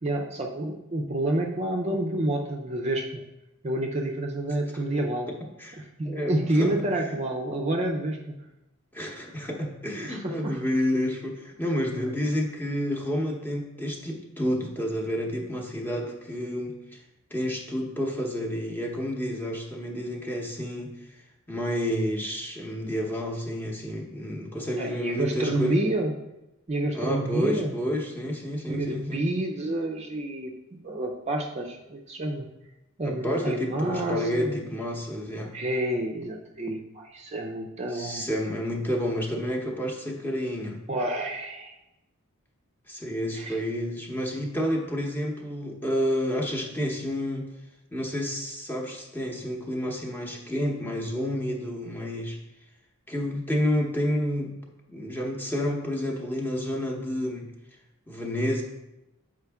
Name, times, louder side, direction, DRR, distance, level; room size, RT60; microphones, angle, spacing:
voice 1, 0.0-3.2 3.6-5.3 6.0-8.4 9.9-10.6 11.9-12.1 24.8-26.1 26.7-27.7 28.7-32.5 33.0-34.6 35.5-38.3 40.9-41.7 43.3-43.6, right 1 dB, 30° right, 1 dB, 0.5 m, -29 dB
voice 2, 5.6-7.0 8.9-17.0 17.3-21.2 21.5-25.8 26.9-29.3 33.0-35.5 37.9-40.8 42.9-47.5 47.9-52.4 53.1-54.5 54.9-57.5 58.1-58.6, equal, 10° left, -1 dB, 0.9 m, -30 dB
6.7 x 5.0 x 3.5 m, 0.94 s
head